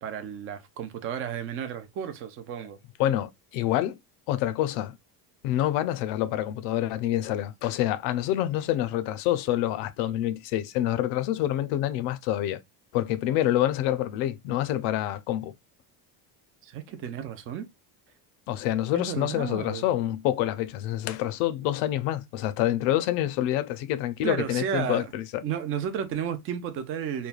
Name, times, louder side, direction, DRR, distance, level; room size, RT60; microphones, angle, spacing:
voice 1, 0.0-2.8 16.6-17.7 18.9-19.9 24.2-25.1 25.4-27.3, right 8 dB, 35° right, 0.4 m, -33 dB
voice 2, 3.0-4.0 4.3-5.0 5.4-12.6 12.9-15.5 18.5-25.4, left 13 dB, 80° left, 0.5 m, -27 dB
3.1 x 2.2 x 2.3 m
cardioid pair, 165°, 41 cm